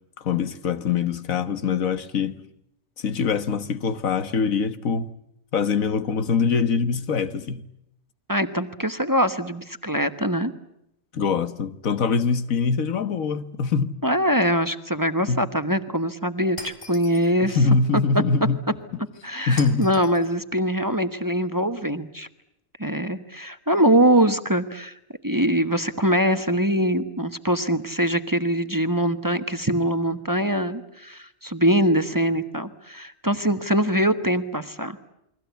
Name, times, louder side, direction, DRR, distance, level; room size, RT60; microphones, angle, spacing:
voice 1, 0.2-2.4 3.0-5.1 5.5-7.6 11.1-13.9 15.3-15.4 17.4-18.6 19.5-19.9, left 5 dB, 90° left, 1.7 m, -23 dB
voice 2, 8.3-10.5 14.0-17.6 19.2-22.3 22.8-24.9 25.2-35.0, equal, 15° right, 1.2 m, -23 dB
Shatter, 16.6-17.3 19.6-20.3, left 1 dB, 45° left, 3.4 m, -40 dB
29.5 x 23.0 x 8.2 m
omnidirectional pair, 1.4 m